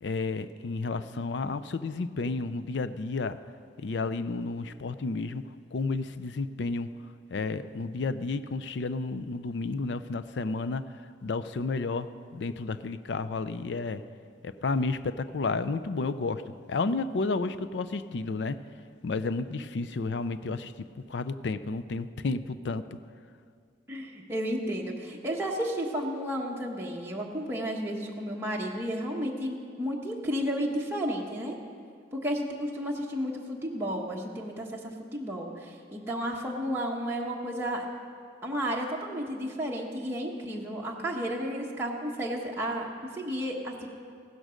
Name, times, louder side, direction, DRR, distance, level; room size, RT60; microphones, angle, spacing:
voice 1, 0.0-3.4 3.8-5.4 5.7-6.9 7.3-10.8 11.2-14.0 14.4-16.4 16.7-18.6 19.0-20.7 21.1-23.0, left 3 dB, 70° left, 13 dB, 0.5 m, -31 dB
voice 2, 23.9-31.6 32.1-37.9 38.4-43.9, equal, 15° right, -3 dB, 1.2 m, -32 dB
15.5 x 12.5 x 5.1 m, 2.2 s
head